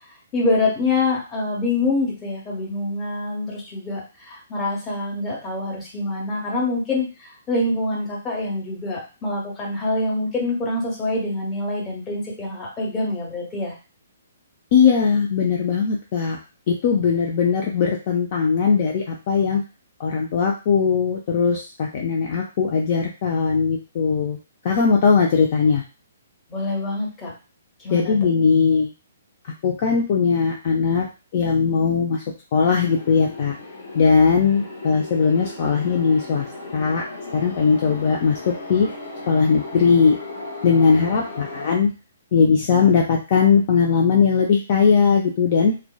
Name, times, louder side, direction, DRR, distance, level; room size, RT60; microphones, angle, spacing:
voice 1, 0.3-13.7 26.5-27.3 27.8-28.1, left 2 dB, 20° left, -2 dB, 1.0 m, -25 dB
voice 2, 14.7-16.4 16.7-19.6 20.0-24.4 24.6-25.8 27.9-28.9 29.6-32.2 32.5-33.6 33.9-36.5 36.7-37.0 37.3-38.9 39.3-40.1 40.6-41.9 42.3-45.7, left 5 dB, 45° left, -1 dB, 0.4 m, -19 dB
sound 1, 32.8-41.8, left 2 dB, 65° left, 0.8 m, -36 dB
2.5 x 2.2 x 2.3 m, 0.32 s
figure-of-eight pair, 130°, 0 cm